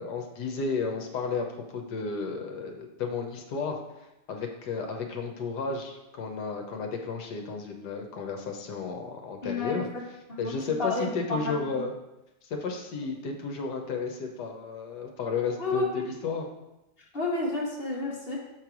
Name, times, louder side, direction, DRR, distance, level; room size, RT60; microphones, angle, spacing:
voice 1, 0.0-3.8 4.3-9.9 10.4-11.9 12.4-16.5, left 4 dB, 70° left, 3 dB, 1.4 m, -33 dB
voice 2, 9.4-9.8 10.3-10.5 10.8-11.8 15.6-15.9 17.1-18.4, left 2 dB, 35° left, -3 dB, 1.5 m, -30 dB
6.7 x 3.3 x 5.9 m, 0.93 s
omnidirectional pair, 1.9 m